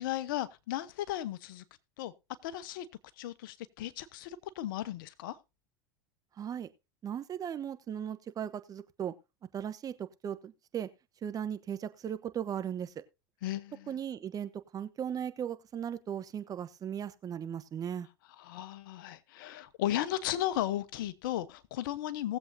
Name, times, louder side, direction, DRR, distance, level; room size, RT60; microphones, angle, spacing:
voice 1, 0.0-1.6 2.0-2.1 2.4-2.9 3.2-5.4 13.4-13.9 18.4-22.4, left 13 dB, 65° left, 1.0 m, -35 dB
voice 2, 6.4-6.7 7.0-9.1 9.5-10.9 11.2-13.0 13.9-18.1, right 9 dB, 30° right, 1.0 m, -37 dB
19.0 x 7.8 x 2.7 m
hypercardioid pair, 90°, 12 cm